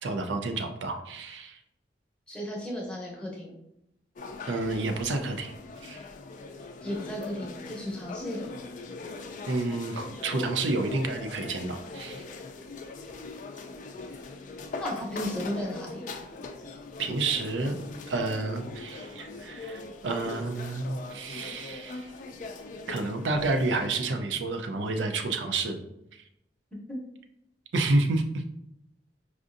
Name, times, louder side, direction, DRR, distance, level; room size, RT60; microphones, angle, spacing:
voice 1, 0.0-1.6 4.5-5.5 5.8-6.0 9.5-12.2 17.0-17.8 18.1-22.1 22.9-25.8 27.7-28.4, right 3 dB, 85° right, 6 dB, 0.5 m, -29 dB
voice 2, 2.3-3.5 6.8-8.4 14.8-16.0 26.9-27.0, left 1 dB, 5° left, -3 dB, 0.8 m, -34 dB
sound 1, 4.2-23.9, left 3 dB, 45° left, 0.3 m, -41 dB
4.8 x 2.5 x 2.5 m, 0.82 s
head